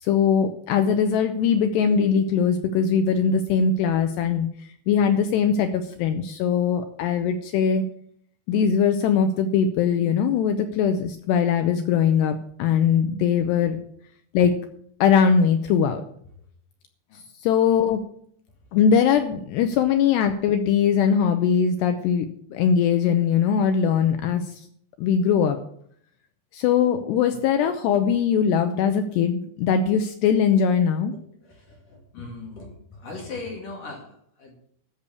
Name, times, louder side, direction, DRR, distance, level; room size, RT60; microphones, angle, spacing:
voice 1, 0.0-4.5 4.9-7.8 8.5-13.8 14.3-14.6 15.0-16.0 17.4-18.0 18.7-24.6 25.0-25.6 26.5-31.1, left 7 dB, 80° left, 7 dB, 2.5 m, -21 dB
voice 2, 31.4-34.7, left 3 dB, 50° left, 0 dB, 3.2 m, -39 dB
13.5 x 6.8 x 7.0 m, 0.64 s
omnidirectional pair, 5.7 m